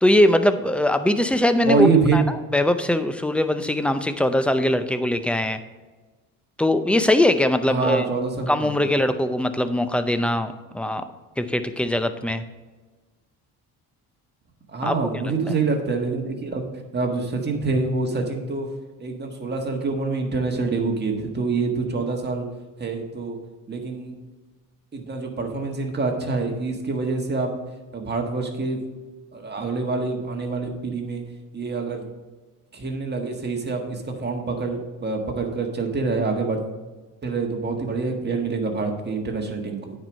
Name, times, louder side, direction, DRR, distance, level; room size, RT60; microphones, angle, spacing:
voice 1, 0.0-2.2 2.5-5.6 6.6-8.0 8.5-11.0 11.4-12.4 14.8-15.0 15.2-15.3, left 1 dB, 5° left, 10 dB, 0.5 m, -21 dB
voice 2, 1.6-2.2 7.7-8.6 14.7-16.7 16.9-18.7 19.0-22.5 22.8-23.4 23.7-24.1 24.9-27.5 27.9-28.8 29.3-31.2 31.5-32.1 32.7-36.6 37.2-39.9, right 4 dB, 25° right, 2 dB, 1.6 m, -25 dB
9.5 x 4.8 x 5.2 m, 1.3 s
cardioid pair, 95°, 40 cm